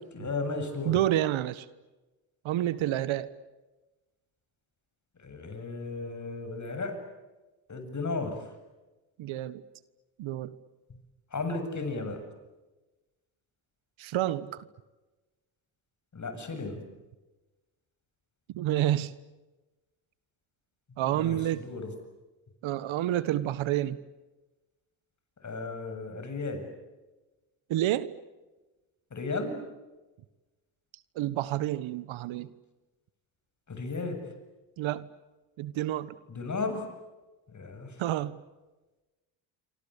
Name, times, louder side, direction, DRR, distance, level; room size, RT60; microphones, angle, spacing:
voice 1, 0.1-1.0 5.2-7.0 7.7-8.4 11.3-12.2 16.1-16.8 21.1-21.9 25.4-26.7 29.1-29.6 33.7-34.2 36.3-36.9 37.5-38.0, left 3 dB, 35° left, 8 dB, 7.8 m, -34 dB
voice 2, 0.8-1.7 2.4-3.3 9.2-9.6 10.2-10.5 14.0-14.6 18.5-19.1 21.0-21.7 22.6-24.0 27.7-28.1 31.1-32.5 34.8-35.1 35.6-36.2 38.0-38.4, right 13 dB, 70° right, 16 dB, 1.5 m, -29 dB
28.0 x 25.0 x 8.5 m, 1.1 s
supercardioid pair, 75°, 49 cm